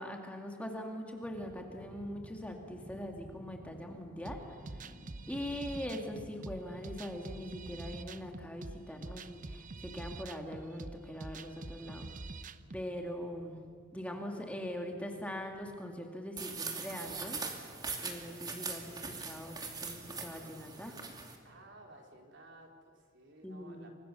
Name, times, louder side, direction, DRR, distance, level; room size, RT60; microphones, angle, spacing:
voice 1, 0.0-4.6 5.3-12.1 12.7-13.6 13.9-17.4 18.0-21.0 23.4-23.9, equal, 5° left, 2 dB, 2.1 m, -42 dB
sound 1, 1.2-16.1, equal, 40° left, 2.4 m, -55 dB
sound 2, 4.3-12.9, right 2 dB, 40° right, 0.9 m, -46 dB
sound 3, 16.4-21.4, right 4 dB, 20° right, 2.6 m, -41 dB
voice 2, 21.4-23.9, right 2 dB, 55° right, 1 dB, 4.3 m, -55 dB
29.0 x 25.0 x 6.9 m, 2.2 s
head